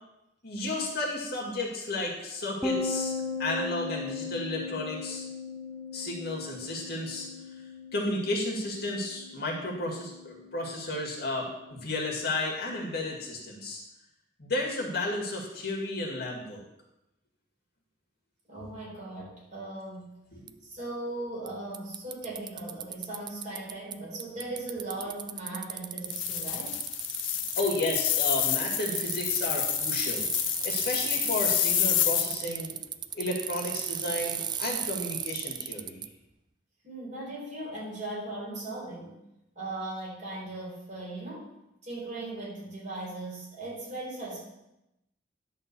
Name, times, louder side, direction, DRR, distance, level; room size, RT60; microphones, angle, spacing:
voice 1, 0.4-3.1 3.4-5.2 5.9-7.3 7.9-13.8 14.4-16.6 20.3-20.6 27.6-36.0, left 2 dB, 55° left, -2 dB, 2.1 m, -33 dB
sound 1, 2.6-12.1, left 3 dB, ahead, 0.8 m, -38 dB
voice 2, 18.5-20.1 20.6-26.8 36.8-39.2 39.6-41.5 41.8-44.4, right 2 dB, 40° right, -5 dB, 3.9 m, -38 dB
Bicycle, 20.5-20.6 21.5-21.6 21.7-23.9 24.2-36.1, right 9 dB, 25° right, 0.3 m, -35 dB
sound 2, 26.0-32.3, left 14 dB, 75° left, 0.5 m, -29 dB
11.0 x 4.1 x 6.9 m, 0.90 s
head